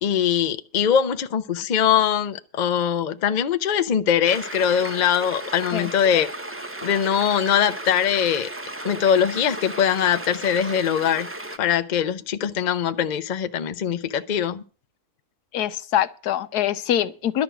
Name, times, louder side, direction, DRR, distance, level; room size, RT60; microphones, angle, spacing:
voice 1, 0.0-6.3 6.8-8.5 8.8-11.3 11.6-14.6, left 8 dB, 45° left, 0.6 m, -22 dB
sound 1, 4.3-11.6, right 1 dB, 15° right, 0.6 m, -35 dB
voice 2, 15.5-17.4, left 11 dB, 85° left, 1.3 m, -24 dB
11.5 x 6.2 x 9.1 m
omnidirectional pair, 1.6 m